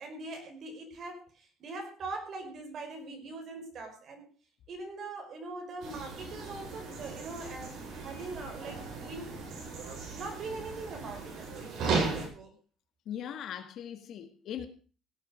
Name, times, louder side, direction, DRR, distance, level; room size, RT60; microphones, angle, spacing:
voice 1, 0.0-4.2 4.7-9.4 10.1-12.5, right 3 dB, 45° right, 5.0 m, -42 dB
sound 1, 5.8-12.3, right 4 dB, 60° right, 7.3 m, -36 dB
voice 2, 13.1-14.7, left 9 dB, 55° left, 1.7 m, -39 dB
17.5 x 8.2 x 6.3 m
cardioid pair, 165°, 0 cm